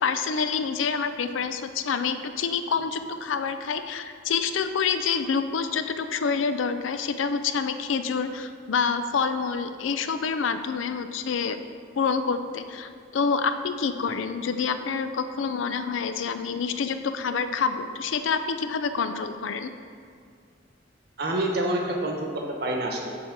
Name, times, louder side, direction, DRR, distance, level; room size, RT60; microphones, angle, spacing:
voice 1, 0.0-11.6 12.0-19.7, left 5 dB, 85° left, 9 dB, 0.4 m, -27 dB
voice 2, 21.2-23.2, right 1 dB, 55° right, 0 dB, 1.0 m, -27 dB
6.9 x 4.4 x 5.9 m, 2.1 s
head